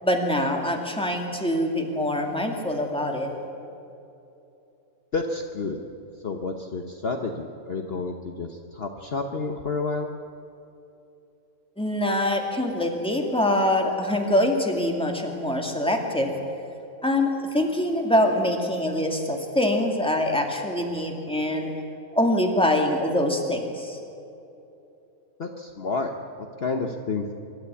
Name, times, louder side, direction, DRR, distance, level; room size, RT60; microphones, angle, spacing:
voice 1, 0.0-3.3 11.8-16.4 17.0-21.7 22.1-24.0, left 1 dB, 5° left, 2 dB, 2.3 m, -24 dB
voice 2, 5.1-5.8 6.2-10.1 25.4-26.1 26.6-27.3, left 3 dB, 45° left, 4 dB, 1.2 m, -30 dB
25.0 x 13.0 x 8.4 m, 2.8 s
omnidirectional pair, 1.5 m